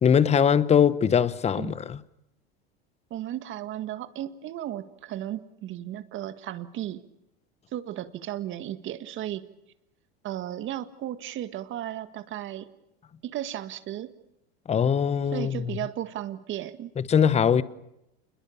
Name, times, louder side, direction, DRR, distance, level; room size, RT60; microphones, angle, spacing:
voice 1, 0.0-2.0 14.7-15.7 17.0-17.6, left 7 dB, 20° left, 1.0 m, -21 dB
voice 2, 3.1-7.0 7.7-9.5 10.2-12.7 13.2-14.1 15.3-16.9, right 12 dB, 40° right, 1.8 m, -35 dB
28.5 x 22.0 x 7.2 m
supercardioid pair, 120°, 30 cm